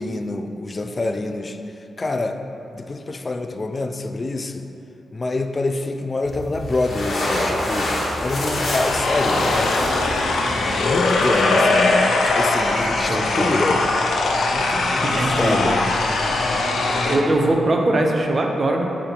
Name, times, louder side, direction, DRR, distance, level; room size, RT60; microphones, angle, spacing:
voice 1, 0.0-2.4 2.7-4.7 5.1-9.8 10.6-13.9 14.5-15.9, left 2 dB, 35° left, 7 dB, 0.4 m, -26 dB
sound 1, 6.2-11.3, left 1 dB, 60° left, 1.6 m, -26 dB
sound 2, 8.7-17.2, left 2 dB, 75° left, 0.7 m, -21 dB
voice 2, 13.1-13.6 15.0-15.7 17.1-18.8, right 2 dB, 45° right, 1 dB, 0.9 m, -21 dB
6.7 x 3.6 x 5.8 m, 2.9 s
cardioid pair, 70°, 0 cm